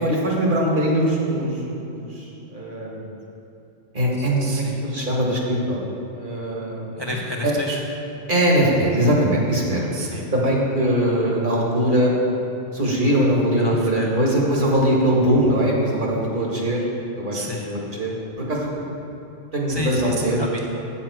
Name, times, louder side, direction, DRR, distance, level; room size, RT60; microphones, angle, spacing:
voice 1, 0.0-3.1 3.9-5.9 6.1-6.9 7.4-7.5 8.3-9.9 10.3-12.1 12.7-16.8 17.2-17.4 17.7-18.1 18.5-18.7 19.5-20.4, right 1 dB, 45° right, -3 dB, 1.5 m, -21 dB
voice 2, 4.2-4.8 7.0-7.8 9.9-10.3 13.6-14.2 17.3-17.7 19.7-20.6, left 1 dB, 35° left, -2 dB, 0.4 m, -30 dB
8.3 x 7.2 x 4.5 m, 2.8 s
omnidirectional pair, 1.3 m